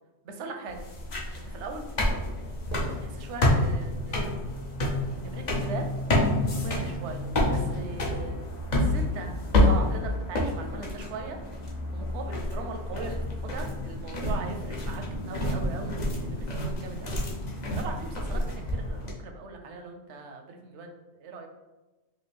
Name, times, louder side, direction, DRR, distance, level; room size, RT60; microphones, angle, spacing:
voice 1, 0.2-0.9 1.4-1.9 2.7-4.3 5.2-5.9 6.5-8.4 8.7-11.4 11.9-15.9 16.2-17.2 17.7-21.5, right 3 dB, 85° right, 4 dB, 0.9 m, -39 dB
sound 1, 0.7-19.1, left 1 dB, 45° left, 0.8 m, -28 dB
4.9 x 2.2 x 3.3 m, 1.1 s
omnidirectional pair, 1.1 m